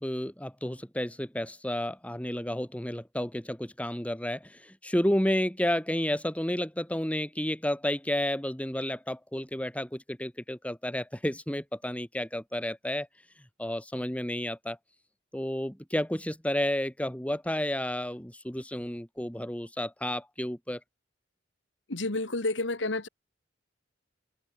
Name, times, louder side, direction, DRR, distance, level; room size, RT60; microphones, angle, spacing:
voice 1, 0.0-13.1 13.6-14.8 15.3-20.8, left 1 dB, 5° left, 2.3 m, -31 dB
voice 2, 21.9-23.1, left 2 dB, 70° left, 2.2 m, -30 dB
head